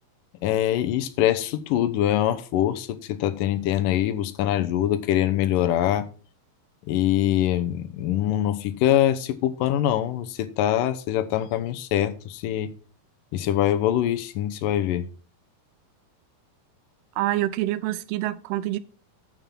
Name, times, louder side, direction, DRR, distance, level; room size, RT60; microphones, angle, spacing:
voice 1, 0.4-6.1 6.9-12.7 13.3-15.1, left 12 dB, 70° left, 2.4 m, -24 dB
voice 2, 17.2-18.8, right 15 dB, 85° right, 2.6 m, -26 dB
9.3 x 6.7 x 5.8 m
omnidirectional pair, 4.4 m